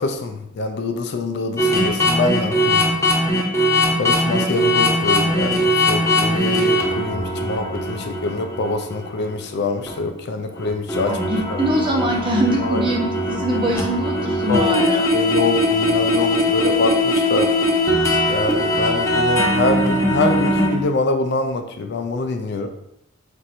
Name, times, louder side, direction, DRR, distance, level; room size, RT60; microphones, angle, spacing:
voice 1, 0.0-2.8 3.6-3.7 4.0-11.2 11.5-11.6 12.6-12.8 14.5-17.5 18.3-22.7, left 2 dB, 60° left, 7 dB, 0.4 m, -24 dB
sound 1, 1.6-9.5 9.9-10.0 10.6-20.8, left 1 dB, 15° left, 0.7 m, -20 dB
voice 2, 11.1-15.1, right 1 dB, 25° right, -1 dB, 0.8 m, -23 dB
4.3 x 2.6 x 4.3 m, 0.78 s
head